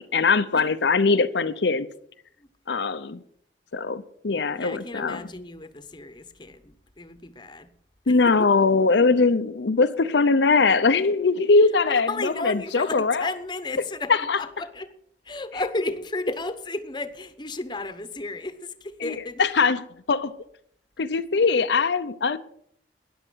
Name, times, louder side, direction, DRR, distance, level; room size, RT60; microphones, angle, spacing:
voice 1, 0.0-1.9 2.7-3.2 3.7-5.2 8.1-13.3 14.1-14.4 19.0-19.1 19.4-20.4 21.0-22.4, left 4 dB, 80° left, 0.7 m, -21 dB
voice 2, 4.5-7.7 8.0-8.5 11.9-14.9 15.2-19.4, left 2 dB, 25° left, 1.0 m, -33 dB
13.5 x 10.5 x 6.2 m
head